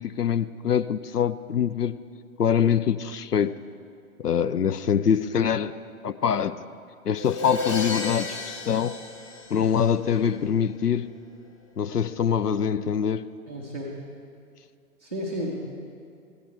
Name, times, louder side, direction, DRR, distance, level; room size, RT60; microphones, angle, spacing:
voice 1, 0.0-2.0 2.4-3.5 4.2-5.7 6.0-6.6 7.1-9.0 9.5-11.1 11.8-13.3, left 8 dB, 85° left, 0.5 m, -24 dB
Crash cymbal, 7.2-10.1, left 4 dB, 20° left, 0.8 m, -33 dB
voice 2, 13.5-13.9 15.0-15.5, equal, 10° right, 0.4 m, -32 dB
15.0 x 10.5 x 4.6 m
figure-of-eight pair, 125°, 46 cm